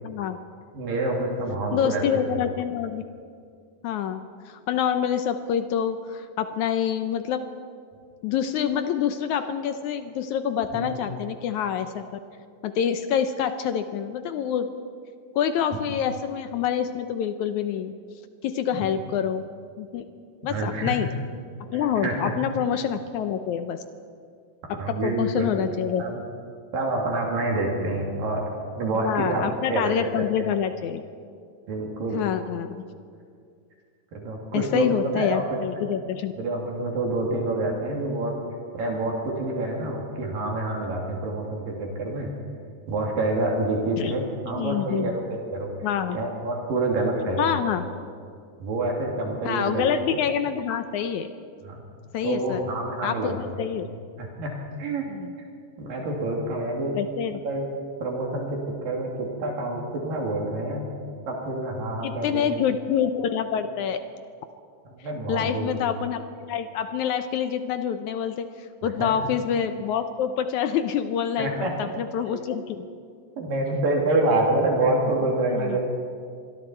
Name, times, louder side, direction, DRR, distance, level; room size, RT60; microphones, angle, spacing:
voice 1, 0.0-0.4 1.7-3.0 3.8-7.4 8.2-12.0 12.6-14.7 15.3-17.9 18.4-19.4 19.8-20.0 20.4-21.1 21.6-23.8 24.7-26.0 29.0-31.0 32.1-32.8 34.5-36.3 44.0-44.1 44.5-45.2 45.8-46.2 47.4-47.8 49.4-51.3 52.1-52.6 53.0-53.9 55.1-55.3 56.9-57.4 62.0-64.0 65.3-72.9 75.5-75.8, left 8 dB, 75° left, 9 dB, 1.8 m, -26 dB
voice 2, 0.7-2.3 10.7-11.0 20.4-21.0 22.0-22.2 24.8-25.6 26.0-26.2 26.7-28.4 28.7-29.5 29.7-30.5 31.7-32.3 34.1-34.9 35.1-35.4 35.7-35.9 36.4-38.3 38.7-42.3 42.9-45.7 46.1-47.5 48.6-49.9 51.6-51.8 52.2-53.6 54.2-55.0 55.8-56.9 57.4-57.7 58.0-58.6 58.8-60.9 61.3-62.6 64.9-65.7 68.8-69.1 71.4-71.7 72.3-72.4 73.4-75.8, right 2 dB, 75° right, -1 dB, 4.3 m, -27 dB
26.0 x 22.5 x 4.5 m, 2.2 s
omnidirectional pair, 4.1 m